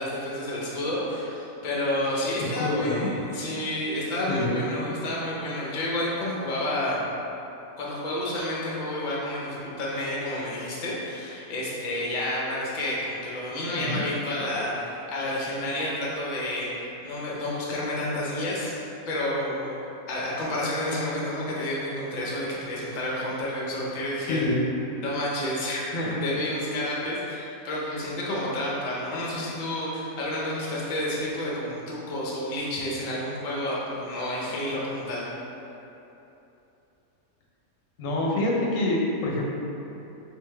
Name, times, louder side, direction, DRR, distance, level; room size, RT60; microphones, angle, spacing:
voice 1, 0.0-7.0 7.8-18.7 19.1-19.8 20.1-24.4 25.0-35.3, left 1 dB, 50° left, -5 dB, 0.5 m, -30 dB
voice 2, 2.4-3.1 4.3-4.6 13.7-14.0 24.3-24.6 38.0-39.4, left 2 dB, 70° left, -3 dB, 0.9 m, -26 dB
3.8 x 2.7 x 3.3 m, 3.0 s
omnidirectional pair, 1.6 m